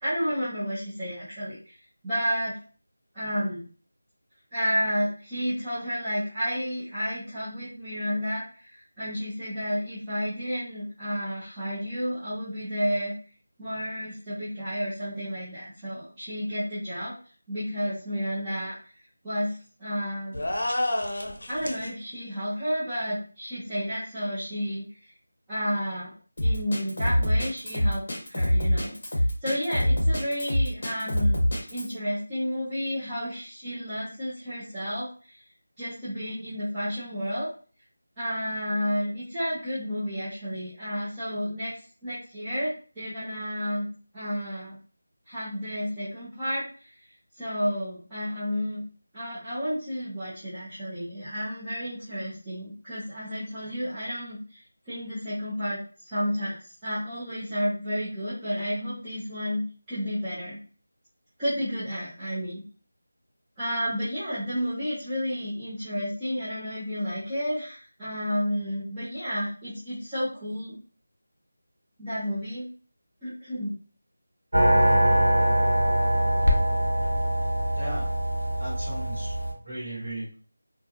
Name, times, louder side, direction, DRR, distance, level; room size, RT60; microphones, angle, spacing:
voice 1, 0.0-1.8 2.0-2.6 3.1-3.6 4.5-13.1 13.6-17.1 17.5-18.8 19.2-20.5 21.5-24.9 25.5-26.1 26.4-28.0 28.3-35.4 35.8-37.5 38.2-43.9 44.1-44.8 45.3-47.1 47.3-48.8 49.1-60.6 61.4-62.6 63.6-70.8 72.0-72.7 73.2-73.7, equal, 10° right, -15 dB, 0.5 m, -31 dB
sound 1, 20.3-21.9, left 1 dB, 60° left, 0.6 m, -29 dB
Drum kit, 26.4-31.9, equal, 35° left, 1.0 m, -24 dB
sound 2, 74.5-79.5, right 1 dB, 90° right, 0.8 m, -23 dB
voice 2, 77.7-78.1 78.6-79.3 79.6-80.4, right 1 dB, 30° right, -8 dB, 1.3 m, -36 dB
2.3 x 2.3 x 2.8 m, 0.40 s
figure-of-eight pair, 175°, 0 cm